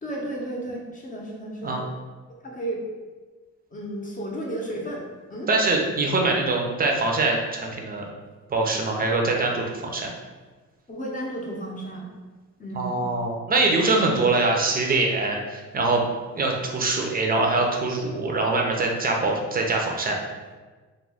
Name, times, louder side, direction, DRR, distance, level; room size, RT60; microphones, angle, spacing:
voice 1, 0.0-1.8 2.4-2.9 3.7-5.0 5.3-5.5 10.9-12.1 12.6-13.0, right 1 dB, 25° left, -2 dB, 0.7 m, -33 dB
voice 2, 5.5-8.1 8.5-10.1 12.7-16.1 16.3-20.2, right 3 dB, 30° right, 1 dB, 0.5 m, -23 dB
2.4 x 2.2 x 3.3 m, 1.3 s
cardioid pair, 90°, 30 cm